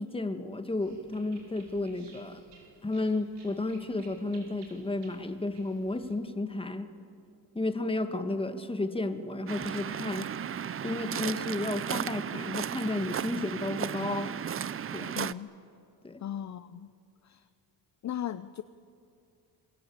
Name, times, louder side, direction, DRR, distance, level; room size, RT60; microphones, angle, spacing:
voice 1, 0.0-2.4 2.8-6.9 7.5-10.3 10.8-14.3 14.9-15.2 16.0-16.2, left 2 dB, 15° left, 8 dB, 1.6 m, -32 dB
sound 1, 0.8-6.1, right 3 dB, 70° right, 6.1 m, -58 dB
Waves surf, 9.5-15.3, right 8 dB, 35° right, 0.5 m, -35 dB
voice 2, 15.1-15.5 16.2-16.9 17.2-17.4 18.0-18.6, left 10 dB, 45° left, 13 dB, 0.6 m, -37 dB
27.0 x 22.0 x 8.6 m, 2.5 s
cardioid pair, 115°, 41 cm